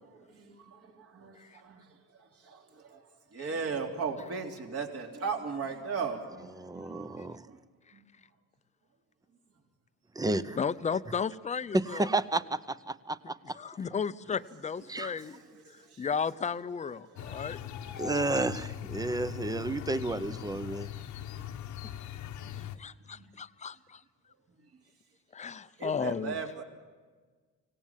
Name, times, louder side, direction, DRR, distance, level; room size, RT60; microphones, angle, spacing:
voice 1, 0.1-7.7 7.9-8.0 14.3-14.5 14.8-16.1 16.5-17.5 17.8-18.4 19.8-19.9 20.6-21.7 22.4-23.3 24.6-24.8 25.8-26.6, right 5 dB, 50° right, 3.4 m, -39 dB
voice 2, 6.6-7.5 10.1-10.6 11.7-13.6 14.9-15.1 18.0-20.9, right 2 dB, 10° right, 0.7 m, -31 dB
voice 3, 10.6-12.1 13.5-15.4 15.7-17.6 22.8-24.0 25.3-26.3, left 6 dB, 25° left, 0.7 m, -34 dB
sound 1, 17.2-22.8, left 11 dB, 75° left, 1.2 m, -40 dB
25.5 x 18.0 x 7.4 m
cardioid pair, 135°, 30 cm